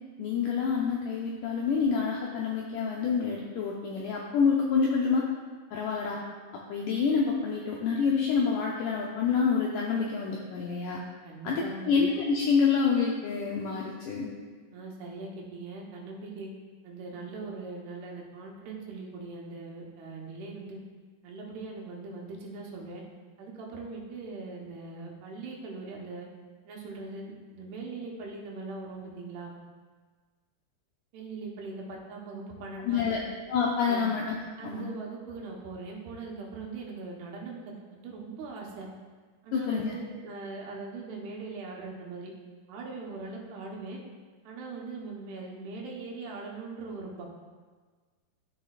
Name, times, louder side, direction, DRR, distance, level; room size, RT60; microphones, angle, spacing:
voice 1, 0.2-5.3 5.7-6.2 6.7-11.0 11.4-14.3 32.9-33.2 33.5-34.4 34.6-34.8 39.5-39.9, left 5 dB, 85° left, -2 dB, 1.8 m, -27 dB
voice 2, 11.2-12.0 14.7-16.5 16.8-20.8 21.2-23.0 23.4-26.3 26.6-29.5 31.1-33.1 33.8-34.1 34.6-38.9 39.4-42.3 42.7-44.0 44.4-47.3, right 3 dB, 85° right, -1 dB, 3.1 m, -41 dB
14.0 x 5.4 x 2.4 m, 1.4 s
omnidirectional pair, 4.5 m